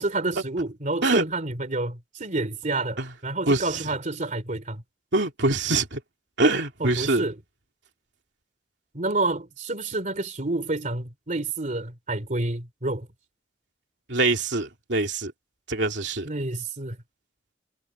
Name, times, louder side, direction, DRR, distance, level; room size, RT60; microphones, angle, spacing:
voice 1, 0.0-4.8 6.8-7.4 8.9-13.1 16.2-17.0, right 2 dB, 40° right, 3.1 m, -29 dB
voice 2, 5.1-6.0 6.4-7.2 14.1-15.3 15.7-16.3, right 2 dB, 70° right, 3.1 m, -24 dB
head